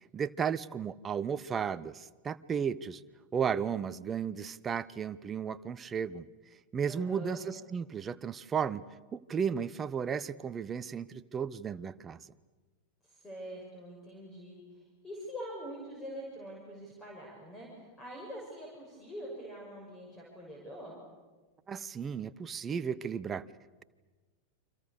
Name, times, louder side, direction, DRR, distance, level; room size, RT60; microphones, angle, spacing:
voice 1, 0.1-3.0 3.3-6.3 6.7-8.8 9.1-12.3 21.7-23.4, right 7 dB, 20° right, 15 dB, 0.9 m, -34 dB
voice 2, 6.9-7.4 13.0-14.6 15.0-21.0, equal, 15° left, -1 dB, 6.5 m, -44 dB
29.5 x 25.5 x 6.8 m, 1.3 s
figure-of-eight pair, 90°, 0 cm